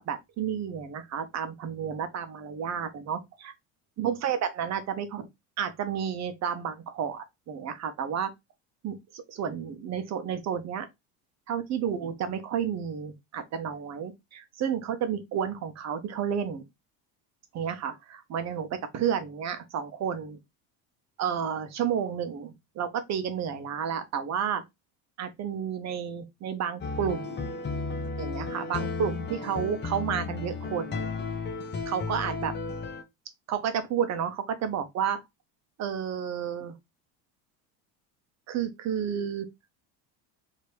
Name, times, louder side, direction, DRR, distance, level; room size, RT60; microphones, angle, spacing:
voice 1, 0.0-3.5 4.0-5.3 5.6-8.3 8.8-10.9 11.5-16.6 17.5-20.4 21.2-24.6 25.2-27.4 28.2-31.1 31.9-32.5 33.5-35.2 35.8-36.7 38.5-39.5, right 8 dB, 45° right, 0.9 m, -31 dB
sound 1, 26.8-33.0, left 4 dB, 25° left, 0.8 m, -34 dB
3.2 x 2.9 x 4.5 m
cardioid pair, 120°, 39 cm